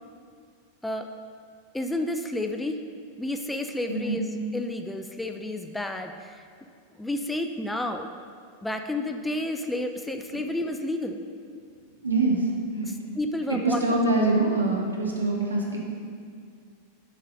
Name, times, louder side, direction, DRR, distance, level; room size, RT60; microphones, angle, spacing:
voice 1, 1.7-2.8 3.2-6.4 7.0-8.1 8.6-11.2 12.8-13.8, left 1 dB, 5° left, 5 dB, 0.4 m, -31 dB
voice 2, 12.0-12.9 13.6-15.8, right 2 dB, 80° right, -2 dB, 1.1 m, -24 dB
7.2 x 3.9 x 5.4 m, 2.1 s
figure-of-eight pair, 90°, 0 cm